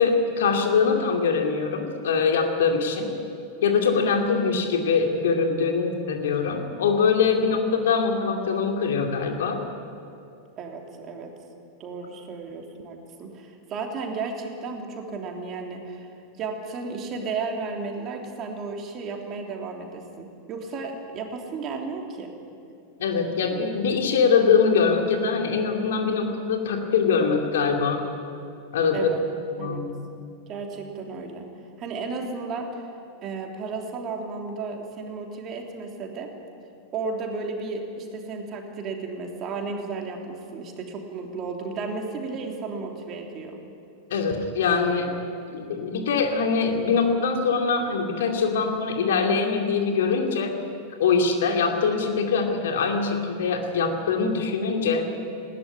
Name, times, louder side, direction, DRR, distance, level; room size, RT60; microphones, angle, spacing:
voice 1, 0.0-3.1 3.6-9.6 23.0-28.1 28.7-29.1 29.6-30.0 44.1-45.1 45.5-50.5 51.0-55.1, left 5 dB, 60° left, 3 dB, 2.5 m, -23 dB
voice 2, 10.6-11.3 11.8-16.1 16.4-22.3 28.9-29.2 29.6-29.8 30.5-31.5 31.8-32.8 33.2-36.3 36.9-43.6, right 4 dB, 30° right, 2 dB, 3.2 m, -33 dB
19.5 x 16.5 x 9.9 m, 2.6 s
figure-of-eight pair, 90°, 0 cm